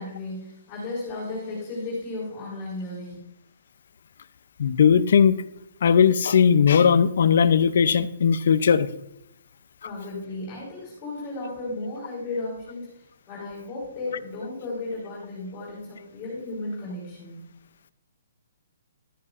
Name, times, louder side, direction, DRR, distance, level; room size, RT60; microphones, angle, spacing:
voice 1, 0.0-3.1 9.8-13.0 13.3-17.4, left 2 dB, 20° left, -9 dB, 4.2 m, -34 dB
voice 2, 4.6-5.4 5.8-8.9, left 7 dB, 55° left, 15 dB, 0.5 m, -18 dB
12.5 x 10.5 x 2.5 m, 0.82 s
hypercardioid pair, 170°, 0 cm